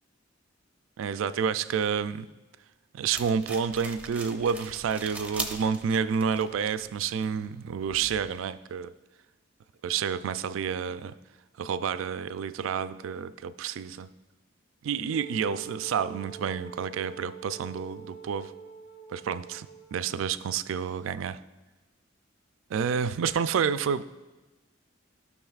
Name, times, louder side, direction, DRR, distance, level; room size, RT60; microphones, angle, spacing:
voice 1, 1.0-2.3 2.9-8.9 9.8-11.1 11.6-14.1 14.8-18.5 19.1-21.4 22.7-24.0, right 7 dB, 70° right, 0.3 m, -29 dB
sound 1, 3.1-8.4, right 2 dB, 5° right, 0.6 m, -41 dB
Wind instrument woodwind instrument, 15.1-20.2, right 6 dB, 60° left, 0.9 m, -46 dB
15.5 x 6.1 x 2.4 m
head